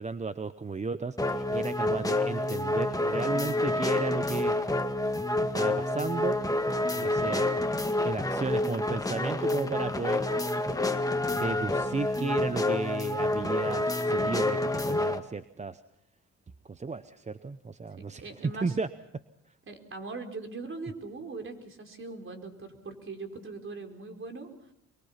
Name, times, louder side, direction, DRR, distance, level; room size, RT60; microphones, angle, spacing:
voice 1, 0.0-4.6 5.5-6.4 6.9-7.5 8.0-10.7 11.3-15.8 16.7-18.9, right 4 dB, 25° right, 12 dB, 0.8 m, -34 dB
sound 1, 1.2-15.2, left 2 dB, 10° left, 1.7 m, -28 dB
voice 2, 18.2-18.8 19.7-24.5, right 3 dB, 40° right, 4 dB, 4.4 m, -40 dB
25.0 x 23.0 x 5.8 m, 0.76 s
cardioid pair, 90°, 30 cm